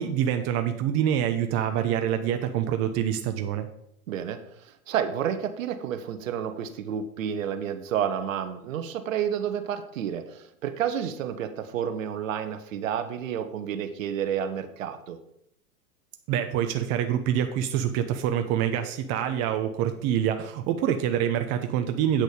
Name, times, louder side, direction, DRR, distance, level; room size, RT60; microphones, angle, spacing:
voice 1, 0.0-3.7 16.3-22.2, right 10 dB, 35° right, 7 dB, 0.8 m, -26 dB
voice 2, 4.1-15.2, right 9 dB, 65° right, 9 dB, 1.2 m, -30 dB
8.4 x 6.4 x 5.2 m, 0.76 s
hypercardioid pair, 100°, 43 cm